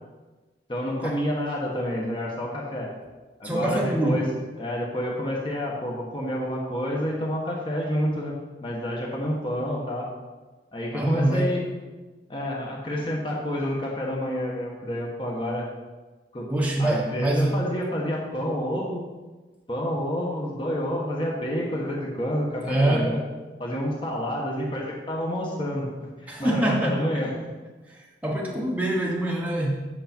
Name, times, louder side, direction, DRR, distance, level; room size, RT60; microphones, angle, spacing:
voice 1, 0.7-2.9 3.4-4.2 4.6-8.3 8.6-10.1 10.7-11.7 12.3-15.7 16.3-16.5 16.8-19.1 19.7-23.2 23.6-25.9 26.2-27.5, equal, 30° left, -2 dB, 1.2 m, -29 dB
voice 2, 3.4-4.3 10.9-11.6 16.5-17.6 22.6-23.2 26.3-27.1 27.9-29.8, right 1 dB, 10° right, -3 dB, 1.1 m, -24 dB
8.2 x 6.5 x 4.4 m, 1.3 s
head